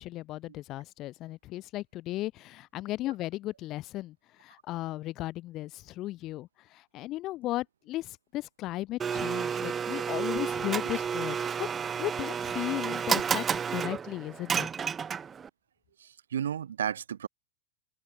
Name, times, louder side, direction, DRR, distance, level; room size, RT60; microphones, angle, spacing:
voice 1, 0.0-4.1 4.4-11.7 12.0-13.5 13.7-14.7, left 16 dB, 35° left, 1.2 m, -36 dB
Domestic sounds home sounds, 9.0-15.5, right 7 dB, 20° right, 1.4 m, -31 dB
voice 2, 16.0-17.3, right 9 dB, 65° right, 0.6 m, -33 dB
open air
figure-of-eight pair, 90°, 0 cm